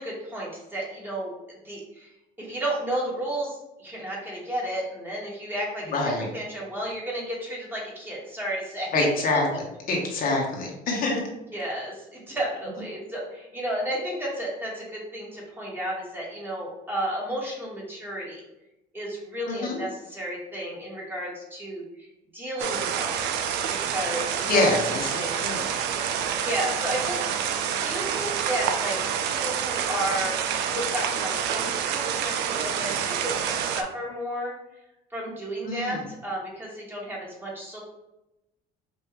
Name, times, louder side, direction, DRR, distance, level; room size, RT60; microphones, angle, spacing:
voice 1, 0.0-1.3 1.6-2.1 2.4-9.1 11.5-18.4 18.9-21.8 22.3-24.7 25.2-25.3 26.4-27.2 27.8-34.5 35.1-37.8, right 1 dB, 10° right, -4 dB, 1.5 m, -32 dB
voice 2, 5.9-6.3 8.9-11.2 19.5-19.9 24.5-25.7 35.6-36.0, left 2 dB, 60° left, -1 dB, 1.2 m, -26 dB
sound 1, 22.6-33.8, right 8 dB, 85° right, 0.5 m, -28 dB
5.4 x 2.7 x 3.0 m, 0.92 s
cardioid pair, 110°, 17 cm